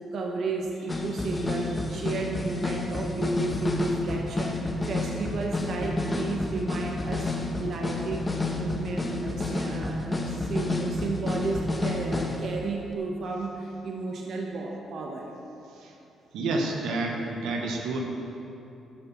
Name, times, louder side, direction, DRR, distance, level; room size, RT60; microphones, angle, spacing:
voice 1, 0.1-4.6 4.9-15.3, right 3 dB, 65° right, 1 dB, 1.3 m, -32 dB
sound 1, 0.9-12.5 12.9-13.0, left 2 dB, 25° left, 1.6 m, -30 dB
voice 2, 16.3-18.0, right 2 dB, 80° right, 1 dB, 1.4 m, -29 dB
12.5 x 6.9 x 7.3 m, 2.8 s
supercardioid pair, 55°, 0 cm